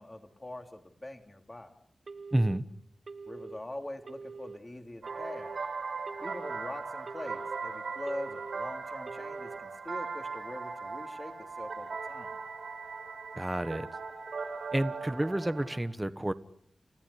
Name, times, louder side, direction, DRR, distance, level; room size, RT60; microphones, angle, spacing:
voice 1, 0.0-1.7 3.2-5.6 6.2-12.3, left 1 dB, 25° left, 6 dB, 3.2 m, -43 dB
Telephone, 2.1-2.6 3.1-3.6 4.1-4.6 5.1-5.6 6.1-6.6 7.1-7.6 8.1-8.6 9.1-9.6, right 4 dB, 55° right, 1.1 m, -44 dB
voice 2, 2.3-2.6 13.4-13.9 14.7-16.3, right 1 dB, 15° right, 13 dB, 1.1 m, -29 dB
sound 1, 5.0-15.8, right 4 dB, 75° right, 4.0 m, -39 dB
30.0 x 15.0 x 9.9 m, 0.70 s
wide cardioid pair, 85°, 0 cm